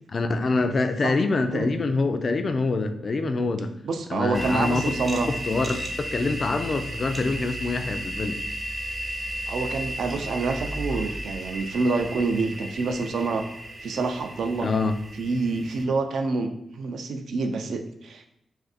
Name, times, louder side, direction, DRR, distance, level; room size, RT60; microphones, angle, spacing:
voice 1, 0.1-3.7 4.1-4.8 5.5-8.4 14.6-15.0, left 3 dB, 45° left, 9 dB, 0.3 m, -25 dB
voice 2, 3.8-5.3 9.5-13.5 13.8-14.7 15.2-18.3, right 3 dB, 80° right, 6 dB, 0.4 m, -27 dB
sound 1, 4.3-15.8, right 1 dB, 25° right, 0.6 m, -34 dB
2.5 x 2.5 x 4.0 m, 0.77 s
cardioid pair, 90°, 0 cm